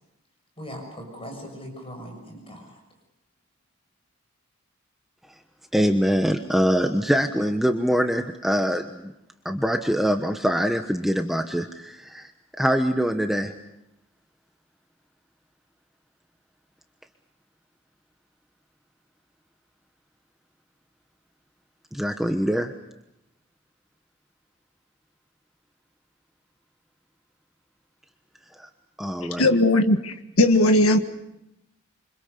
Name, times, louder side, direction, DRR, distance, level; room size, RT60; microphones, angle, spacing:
voice 1, 0.6-2.8, equal, 25° left, 3 dB, 6.6 m, -39 dB
voice 2, 5.7-9.1 9.4-12.3 12.6-13.5 21.9-22.7 28.6-28.7 29.0-29.5, equal, ahead, 5 dB, 1.1 m, -24 dB
voice 3, 29.4-31.0, left 1 dB, 85° left, 6 dB, 1.7 m, -18 dB
28.5 x 25.5 x 6.8 m, 0.88 s
head